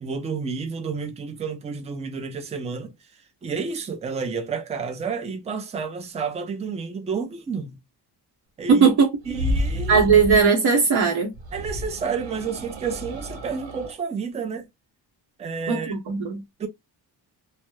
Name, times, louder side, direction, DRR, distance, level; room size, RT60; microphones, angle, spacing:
voice 1, 0.0-2.9 3.4-7.8 8.6-8.9 9.3-10.1 11.5-14.7 15.4-16.0 16.6-16.7, right 5 dB, 15° right, 0.3 m, -30 dB
voice 2, 8.7-9.1 9.9-11.3 15.7-16.4, right 5 dB, 60° right, 0.8 m, -18 dB
sound 1, 9.2-10.5 11.3-14.0, equal, 85° right, 1.0 m, -30 dB
2.1 x 2.0 x 3.0 m
wide cardioid pair, 155°, 43 cm